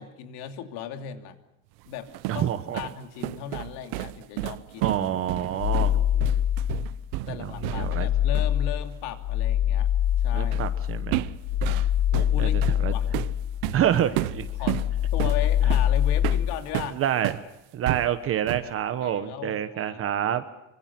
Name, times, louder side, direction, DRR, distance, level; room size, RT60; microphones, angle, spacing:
voice 1, 0.0-1.4 1.9-2.5 2.7-5.0 5.9-6.4 7.3-9.9 10.2-10.6 11.7-13.1 13.8-13.9 14.6-14.8 15.1-17.0 18.6-18.7 19.0-20.0, left 10 dB, 70° left, 6 dB, 2.8 m, -37 dB
sound 1, 1.9-8.1 8.4-8.6 10.5-10.8 11.1-17.5 17.9-18.8, right 18 dB, 70° right, 0.9 m, -32 dB
voice 2, 2.3-2.8 4.8-6.0 7.3-8.1 10.3-11.2 12.4-12.9 13.7-14.8 16.9-17.3 17.7-20.4, right 10 dB, 35° right, 10 dB, 1.1 m, -27 dB
sound 2, 5.6-7.0 7.4-14.0 14.3-16.6, left 10 dB, 85° left, 2.1 m, -25 dB
26.0 x 25.0 x 5.9 m, 0.89 s
cardioid pair, 165°, 39 cm